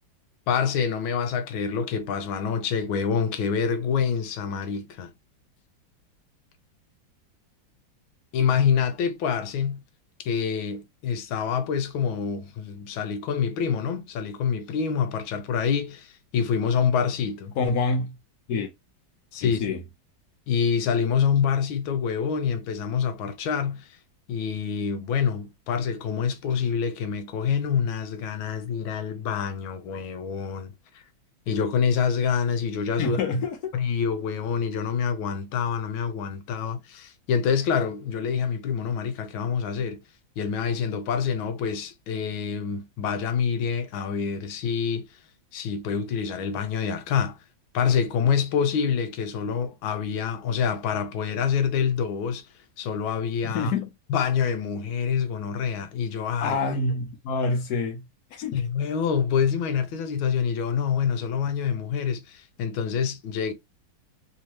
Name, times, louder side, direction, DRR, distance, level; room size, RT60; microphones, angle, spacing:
voice 1, 0.5-5.1 8.3-9.8 10.2-17.6 19.3-19.6 20.5-23.9 24.3-30.7 31.5-33.2 33.7-40.0 40.4-45.1 45.5-47.4 47.7-52.4 52.8-53.7 54.1-56.6 58.5-63.5, left 7 dB, 85° left, 1.5 m, -26 dB
voice 2, 17.6-18.1 18.5-18.7 19.4-19.8 33.0-33.7 53.4-53.9 56.4-58.0 58.3-58.6, left 3 dB, 55° left, 1.3 m, -26 dB
3.6 x 2.6 x 3.0 m
omnidirectional pair, 2.2 m